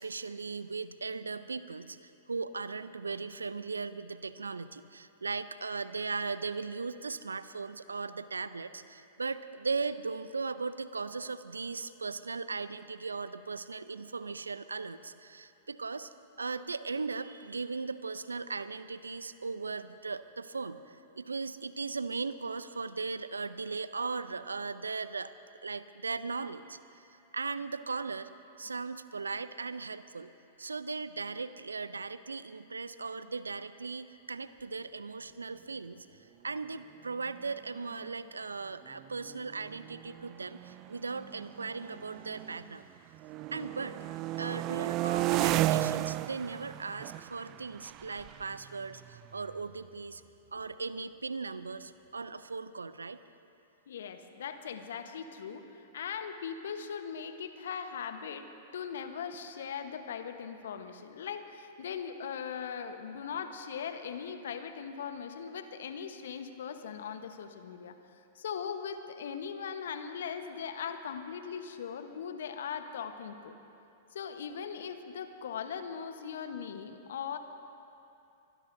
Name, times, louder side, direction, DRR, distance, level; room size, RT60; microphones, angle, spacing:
voice 1, 0.0-16.1 16.4-25.3 25.6-26.8 27.3-28.3 28.6-30.3 30.6-36.1 36.4-42.8 43.5-44.0 44.4-50.2 50.5-53.2, right 4 dB, 85° right, 14 dB, 0.6 m, -38 dB
sound 1, 37.4-37.5 37.8-38.1 38.9-42.8 43.1-49.8, right 15 dB, 40° right, 0.4 m, -35 dB
voice 2, 53.9-73.5 74.1-77.4, left 7 dB, 70° left, 8 dB, 1.1 m, -40 dB
25.0 x 21.0 x 2.7 m, 2.8 s
figure-of-eight pair, 100°, 0 cm